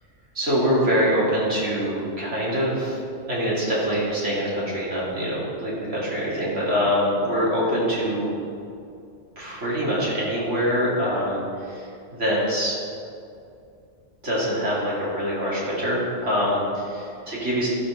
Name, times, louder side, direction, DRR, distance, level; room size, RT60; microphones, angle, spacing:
voice 1, 0.3-3.0 3.3-8.3 9.4-12.8 14.2-17.7, equal, 80° right, -7 dB, 3.3 m, -24 dB
12.5 x 4.7 x 6.4 m, 2.4 s
omnidirectional pair, 1.2 m